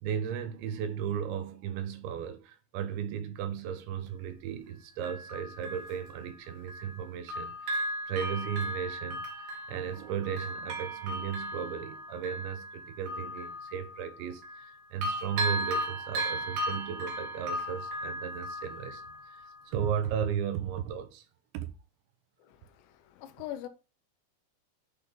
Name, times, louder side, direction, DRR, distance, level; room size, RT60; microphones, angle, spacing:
voice 1, 0.0-9.2 9.7-19.1 19.3-21.3 21.5-21.7, right 8 dB, 80° right, 3.3 m, -35 dB
Bell, 4.1-4.2 5.0-7.0 7.3-14.7 15.0-19.6 20.1-20.2, equal, 60° right, 3.1 m, -36 dB
voice 2, 22.4-23.7, left 12 dB, 80° left, 3.0 m, -43 dB
11.0 x 4.3 x 5.2 m
omnidirectional pair, 5.4 m